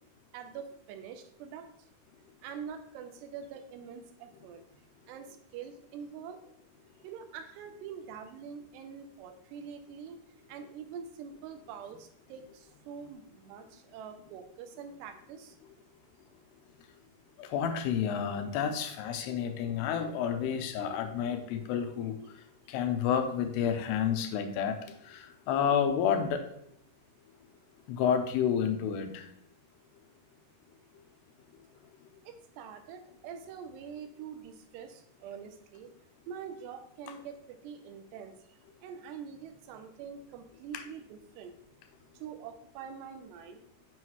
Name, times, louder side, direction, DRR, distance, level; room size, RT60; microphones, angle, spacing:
voice 1, 0.3-1.7 2.4-4.6 5.1-6.4 7.0-10.2 10.5-15.6 32.3-35.9 36.3-38.4 38.8-41.5 42.2-43.6, right 7 dB, 85° right, 7 dB, 2.9 m, -45 dB
voice 2, 17.4-22.2 22.7-26.4 27.9-29.3 40.7-40.8, left 8 dB, 85° left, 7 dB, 2.8 m, -30 dB
7.7 x 6.3 x 3.0 m, 0.71 s
omnidirectional pair, 4.8 m